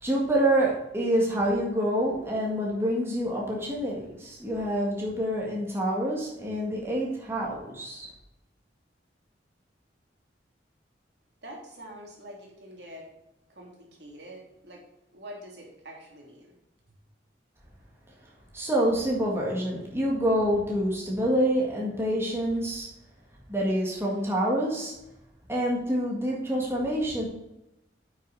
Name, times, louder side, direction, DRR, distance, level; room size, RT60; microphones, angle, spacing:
voice 1, 0.0-8.1 18.5-22.9 23.5-24.9 25.5-27.3, right 1 dB, 15° right, -3 dB, 1.8 m, -27 dB
voice 2, 11.4-13.1 13.5-14.8 15.1-16.6, equal, 70° right, -1 dB, 2.7 m, -45 dB
8.9 x 6.5 x 4.1 m, 0.89 s
head